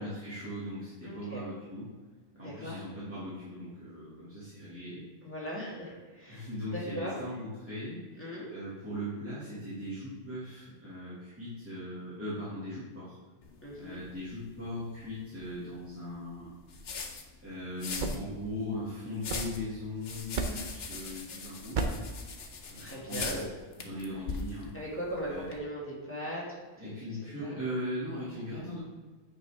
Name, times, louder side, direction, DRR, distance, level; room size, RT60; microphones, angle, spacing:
voice 1, 0.0-1.9 2.3-5.1 6.3-13.2 13.8-16.5 17.4-22.0 22.7-23.5 23.8-24.7 25.2-25.5 26.8-28.8, left 1 dB, 10° right, -11 dB, 2.0 m, -39 dB
voice 2, 1.0-1.4 2.4-2.9 5.2-6.5 6.7-7.2 8.2-8.5 13.6-14.0 22.8-23.4 24.7-26.9 27.4-27.6, equal, 10° left, -7 dB, 1.8 m, -39 dB
sound 1, 13.4-25.6, left 4 dB, 65° left, 1.0 m, -43 dB
sound 2, 17.8-19.9 20.3-20.8 21.7-22.2, right 3 dB, 50° right, 0.8 m, -35 dB
9.2 x 4.8 x 3.4 m, 1.4 s
omnidirectional pair, 1.1 m